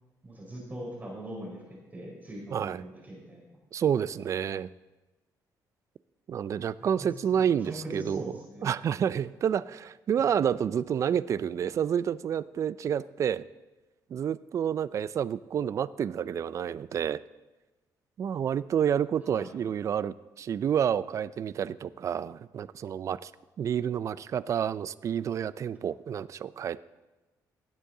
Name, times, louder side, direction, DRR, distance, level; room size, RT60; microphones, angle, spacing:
voice 1, 0.2-1.6 1.9-3.4 6.8-7.1 7.4-8.7 19.2-19.6, right 1 dB, 25° right, -3 dB, 4.3 m, -41 dB
voice 2, 2.5-2.8 3.7-4.7 6.3-8.2 8.6-13.5 14.1-17.2 18.2-23.3 23.6-26.8, right 8 dB, 45° right, 18 dB, 0.3 m, -29 dB
16.5 x 8.2 x 3.8 m, 1.1 s
cardioid pair, 125°, 7 cm